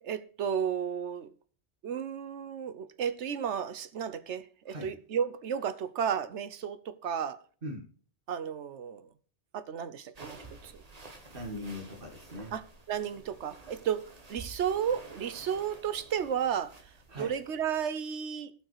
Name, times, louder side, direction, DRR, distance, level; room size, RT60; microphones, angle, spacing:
voice 1, 0.0-1.3 1.8-7.4 8.3-9.1 9.5-10.8 12.5-16.8 17.1-18.5, right 8 dB, 80° right, 1.2 m, -33 dB
sound 1, 10.1-17.8, right 2 dB, 35° right, 1.5 m, -51 dB
voice 2, 11.3-12.5 17.1-17.3, equal, 50° right, 1.9 m, -40 dB
16.0 x 5.8 x 4.7 m
omnidirectional pair, 1.2 m